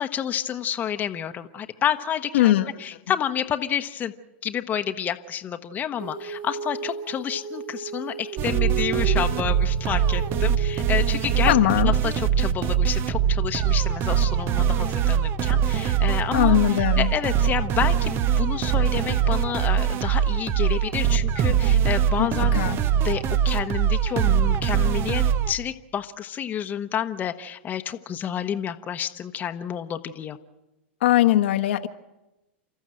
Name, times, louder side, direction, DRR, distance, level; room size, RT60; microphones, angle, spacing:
voice 1, 0.0-4.1 4.4-22.6 23.0-30.4, left 9 dB, 25° left, 7 dB, 1.1 m, -29 dB
voice 2, 2.3-2.7 11.4-11.9 16.3-17.1 22.2-22.8 31.0-31.9, left 14 dB, 70° left, 5 dB, 1.3 m, -20 dB
Female singing, 6.0-11.7, right 7 dB, 60° right, 7.5 m, -34 dB
sound 1, 8.4-25.5, right 9 dB, 40° right, 1.0 m, -22 dB
29.5 x 13.5 x 7.7 m, 0.99 s
hypercardioid pair, 115°, 6 cm